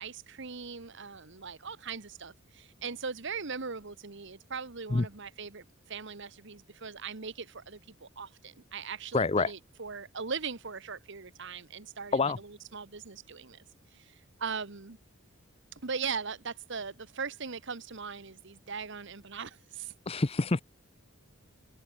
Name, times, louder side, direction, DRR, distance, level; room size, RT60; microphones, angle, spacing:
voice 1, 0.0-12.2 12.7-13.6 13.9-15.0 15.7-19.9, right 5 dB, 60° right, 1.3 m, -40 dB
voice 2, 9.1-9.5 12.1-12.4 20.1-20.6, left 3 dB, 30° left, 0.6 m, -26 dB
open air
head